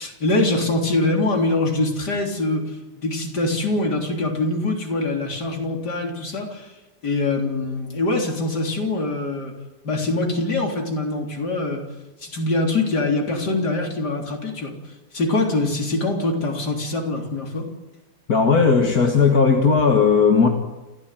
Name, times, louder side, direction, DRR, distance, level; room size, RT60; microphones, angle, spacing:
voice 1, 0.0-2.8 3.0-6.7 7.0-9.5 9.8-11.8 12.2-14.7 15.1-17.7, left 2 dB, 85° left, 1 dB, 4.2 m, -23 dB
voice 2, 18.3-20.5, left 5 dB, 65° left, 3 dB, 2.4 m, -16 dB
28.5 x 15.0 x 9.3 m, 1.1 s
omnidirectional pair, 1.7 m